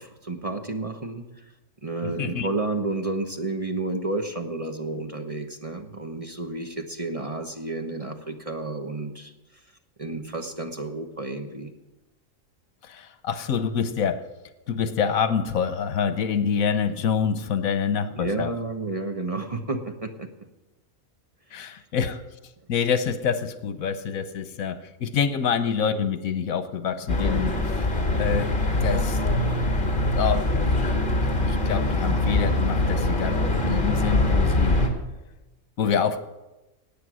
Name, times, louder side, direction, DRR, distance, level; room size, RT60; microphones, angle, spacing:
voice 1, 0.0-1.4 1.8-9.3 10.0-11.7 18.1-20.3 21.6-21.7, right 2 dB, 25° right, 4 dB, 1.1 m, -31 dB
voice 2, 2.0-2.5 12.8-14.2 14.7-18.5 21.5-22.2 22.7-27.5 28.2-28.5 28.8-29.2 30.1-30.9 31.2-34.8 35.8-36.2, left 7 dB, 80° left, 12 dB, 1.3 m, -26 dB
sound 1, 27.1-34.9, left 2 dB, 35° left, 2.2 m, -23 dB
18.0 x 8.8 x 6.3 m, 1.1 s
omnidirectional pair, 1.4 m